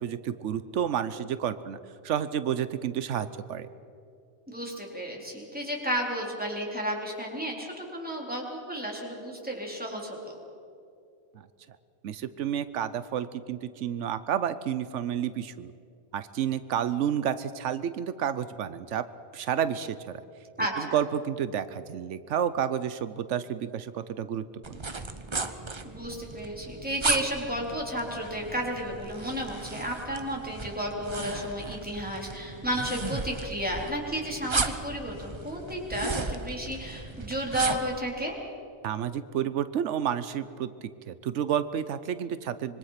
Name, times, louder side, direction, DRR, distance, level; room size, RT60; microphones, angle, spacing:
voice 1, 0.0-1.8 2.0-3.7 12.0-15.7 16.1-19.0 19.3-20.2 20.8-24.8 38.8-42.8, right 9 dB, 85° right, 13 dB, 1.1 m, -30 dB
voice 2, 4.5-10.3 20.6-21.0 25.8-38.3, equal, 5° right, -2 dB, 3.9 m, -32 dB
sound 1, 24.6-38.0, right 3 dB, 25° right, 0.9 m, -35 dB
25.5 x 23.0 x 5.8 m, 2.5 s
omnidirectional pair, 1.2 m